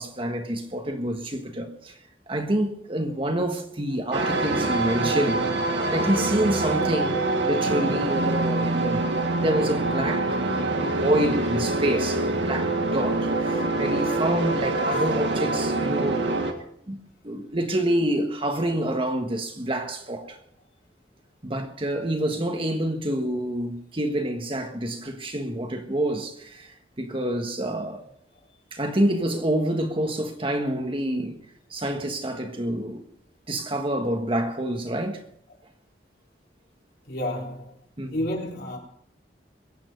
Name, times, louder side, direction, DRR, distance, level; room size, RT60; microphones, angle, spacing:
voice 1, 0.0-1.9 2.3-5.4 5.9-9.0 9.4-10.4 10.8-16.3 16.9-20.4 21.4-28.0 28.7-31.4 31.7-33.0 33.5-35.2 38.0-38.2, right 1 dB, 30° right, 1.5 m, -27 dB
sound 1, 4.1-16.5, right 2 dB, 85° right, 2.0 m, -25 dB
voice 2, 37.1-37.7 38.1-38.8, left 1 dB, 60° left, 3.6 m, -30 dB
22.5 x 8.9 x 5.3 m
head